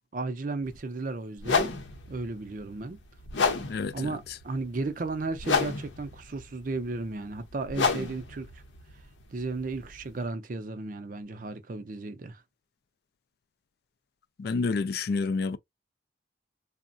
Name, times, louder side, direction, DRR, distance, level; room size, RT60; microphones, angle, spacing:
voice 1, 0.1-1.7 2.1-3.0 3.9-8.5 9.3-12.4, right 3 dB, 45° right, 0.5 m, -34 dB
sound 1, 0.6-0.8 1.4-10.2, left 4 dB, 80° left, 0.7 m, -31 dB
voice 2, 3.6-4.2 14.4-15.6, left 4 dB, 55° left, 0.3 m, -29 dB
3.6 x 2.1 x 2.5 m
head